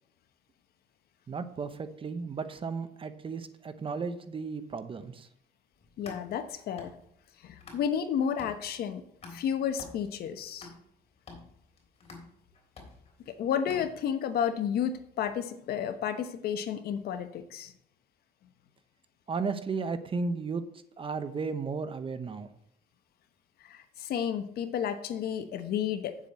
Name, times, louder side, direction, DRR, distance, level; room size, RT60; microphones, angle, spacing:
voice 1, 1.3-5.3 19.3-20.6 21.0-22.5, right 4 dB, 30° right, 10 dB, 0.9 m, -34 dB
sound 1, 5.8-8.1 8.4-14.3, left 3 dB, 40° left, 3.7 m, -50 dB
voice 2, 6.0-6.9 7.4-9.0 9.3-10.7 13.3-17.7 23.6-26.2, left 8 dB, 65° left, 9 dB, 1.1 m, -32 dB
9.3 x 7.4 x 4.3 m, 0.72 s
cardioid pair, 110°, 17 cm